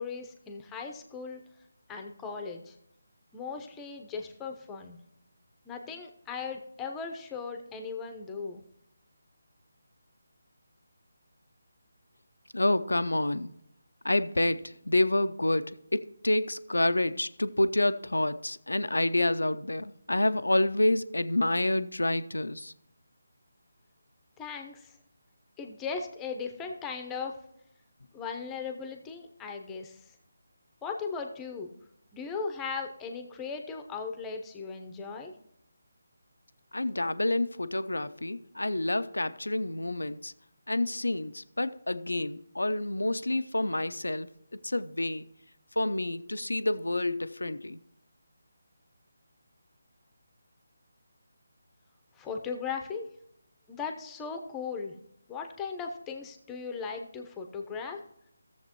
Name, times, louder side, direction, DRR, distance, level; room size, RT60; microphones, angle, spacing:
voice 1, 0.0-1.4 1.9-2.8 3.3-5.0 5.7-8.6 24.4-24.9 25.6-27.3 28.1-30.0 30.8-31.8 32.1-35.3 52.2-53.1 53.7-54.9 55.3-58.0, left 5 dB, 10° left, 0.9 m, -37 dB
voice 2, 12.5-13.5 14.0-22.7 36.7-40.3 40.7-44.3 44.6-45.3 45.8-47.8, left 1 dB, 85° left, 0.5 m, -28 dB
15.5 x 7.3 x 3.0 m
figure-of-eight pair, 155°, 0 cm